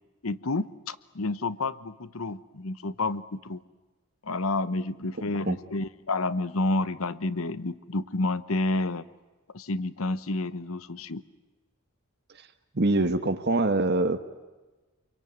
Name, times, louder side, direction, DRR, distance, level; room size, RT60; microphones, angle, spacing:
voice 1, 0.2-3.6 4.2-9.0 9.5-11.2, left 2 dB, 70° left, 16 dB, 1.0 m, -30 dB
voice 2, 12.7-14.2, right 2 dB, 50° right, 9 dB, 1.2 m, -24 dB
27.5 x 23.0 x 9.4 m, 1.2 s
head